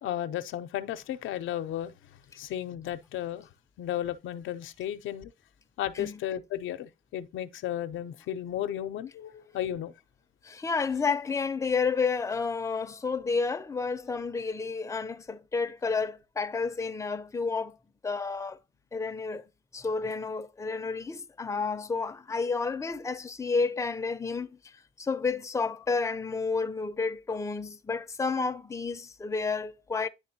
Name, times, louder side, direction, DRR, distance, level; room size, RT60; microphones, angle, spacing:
voice 1, 0.0-1.9 2.4-3.5 3.8-5.3 5.8-9.9, left 11 dB, 80° left, 0.6 m, -34 dB
voice 2, 10.4-17.8 18.0-18.6 18.9-19.4 19.7-24.5 25.0-30.1, left 4 dB, 15° left, 0.6 m, -30 dB
10.0 x 3.5 x 2.7 m
cardioid pair, 90°, 20 cm